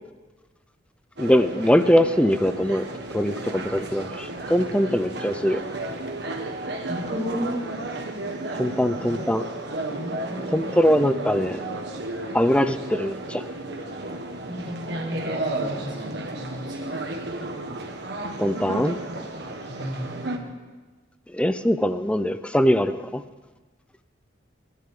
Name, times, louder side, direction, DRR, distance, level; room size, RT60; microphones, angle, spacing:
voice 1, 1.2-2.8 3.1-5.6 8.6-9.4 10.5-11.6 12.3-13.5 18.4-19.0 21.3-23.2, equal, 5° left, 11 dB, 0.5 m, -22 dB
sound 1, 1.2-20.4, right 2 dB, 60° right, 1.6 m, -33 dB
voice 2, 6.8-7.7 9.9-11.0 14.5-16.9 19.7-20.3, equal, 25° right, -4 dB, 5.2 m, -33 dB
30.0 x 11.0 x 3.8 m, 1.3 s
head